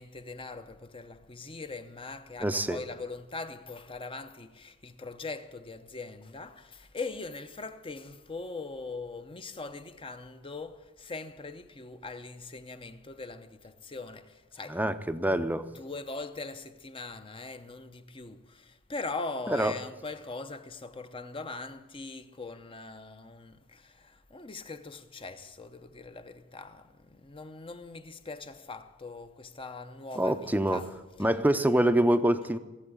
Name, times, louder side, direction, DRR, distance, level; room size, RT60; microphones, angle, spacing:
voice 1, 0.0-14.8 15.7-30.9, left 3 dB, 25° left, 0.7 m, -41 dB
voice 2, 2.4-2.8 14.7-15.7 19.5-19.7 30.2-30.9 31.2-32.6, right 1 dB, 10° right, 0.6 m, -25 dB
17.5 x 7.9 x 9.8 m
head